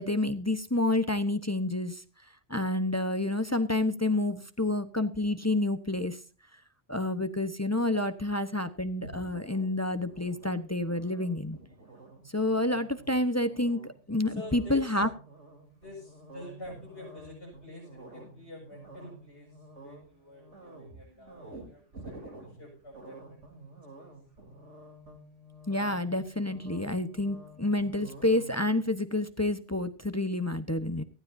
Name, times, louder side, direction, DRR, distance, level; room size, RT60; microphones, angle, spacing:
voice 1, 0.0-2.0 2.5-6.2 6.9-11.6 12.3-15.1 25.7-31.0, left 2 dB, 15° left, 10 dB, 1.0 m, -29 dB
sound 1, 9.0-28.9, right 2 dB, 85° right, 4.0 m, -50 dB
voice 2, 14.3-15.0 15.8-19.5 19.8-23.7 24.0-24.1, left 1 dB, 55° left, -1 dB, 7.0 m, -47 dB
18.5 x 15.5 x 2.7 m, 0.38 s
omnidirectional pair, 1.2 m